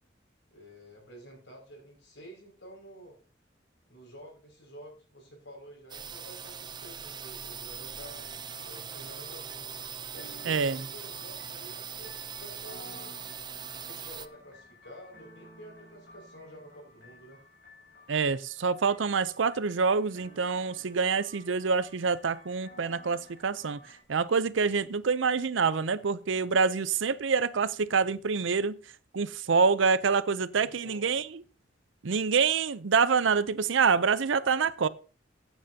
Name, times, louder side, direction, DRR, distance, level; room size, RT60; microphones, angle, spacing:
voice 1, 0.5-3.2 3.9-8.3 8.6-9.7 10.1-13.2 13.7-17.4 30.6-31.2, equal, 70° left, 5.9 m, -50 dB
sound 1, 5.9-14.3, right 7 dB, 25° right, 0.5 m, -41 dB
sound 2, 8.0-24.0, left 1 dB, 55° left, 4.8 m, -54 dB
voice 2, 10.5-10.8 18.1-23.8 24.1-28.8 29.1-31.2 32.0-34.9, right 5 dB, 85° right, 0.6 m, -26 dB
15.5 x 9.1 x 2.8 m
head